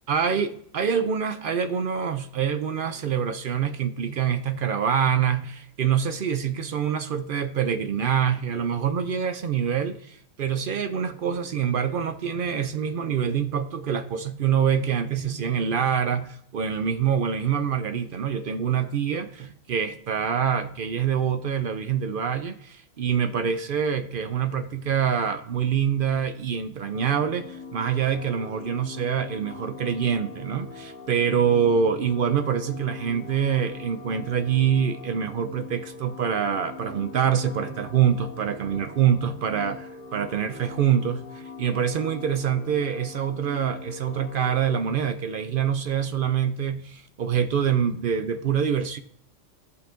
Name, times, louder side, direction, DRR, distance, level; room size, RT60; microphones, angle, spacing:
voice 1, 0.1-49.0, right 8 dB, 60° right, 0.6 m, -25 dB
sound 1, 26.9-44.6, left 4 dB, 40° left, 2.0 m, -42 dB
16.5 x 5.4 x 2.5 m
omnidirectional pair, 1.3 m